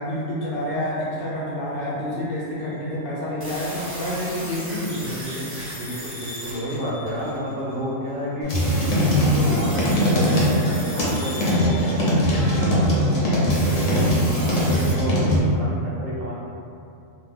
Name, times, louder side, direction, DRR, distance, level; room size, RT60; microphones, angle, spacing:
voice 1, 0.0-5.5, left 1 dB, 60° left, -7 dB, 0.7 m, -28 dB
sound 1, 3.4-7.6 8.5-12.7 13.5-14.9, equal, 15° right, 0.4 m, -36 dB
voice 2, 5.8-8.6 9.1-13.1 13.7-16.3, equal, 60° right, -6 dB, 0.7 m, -31 dB
sound 2, 8.4-15.4, equal, 85° left, 1.1 m, -21 dB
2.8 x 2.1 x 3.4 m, 2.6 s
omnidirectional pair, 1.3 m